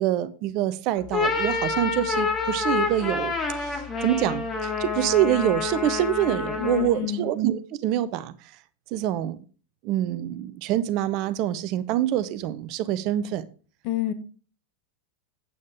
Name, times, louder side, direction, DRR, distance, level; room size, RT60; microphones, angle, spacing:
voice 1, 0.0-8.3 8.9-9.4 9.8-13.4, right 12 dB, 40° right, 0.6 m, -26 dB
sound 1, 1.0-7.0, left 4 dB, 15° left, 1.6 m, -28 dB
voice 2, 6.6-7.3 13.8-14.1, left 12 dB, 45° left, 1.2 m, -28 dB
8.5 x 8.4 x 3.5 m
figure-of-eight pair, 90°, 0 cm